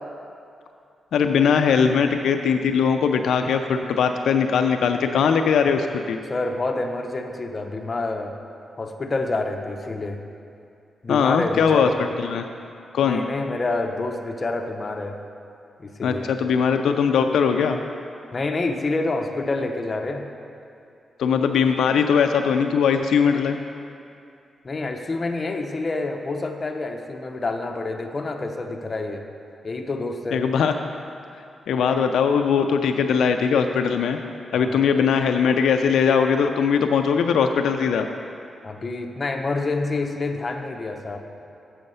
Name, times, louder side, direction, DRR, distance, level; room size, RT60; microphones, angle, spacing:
voice 1, 1.1-6.2 11.1-12.5 12.9-13.2 16.0-17.8 21.2-23.6 30.3-30.7 31.7-34.2 34.5-38.1, left 6 dB, 90° left, 6 dB, 0.3 m, -20 dB
voice 2, 6.3-8.3 8.8-10.2 11.0-12.0 13.0-15.2 15.8-16.3 18.3-20.3 24.6-29.2 29.6-30.5 34.5-34.8 38.6-41.2, left 2 dB, 35° left, 4 dB, 0.7 m, -28 dB
7.7 x 6.3 x 5.4 m, 2.5 s
cardioid pair, 95°, 0 cm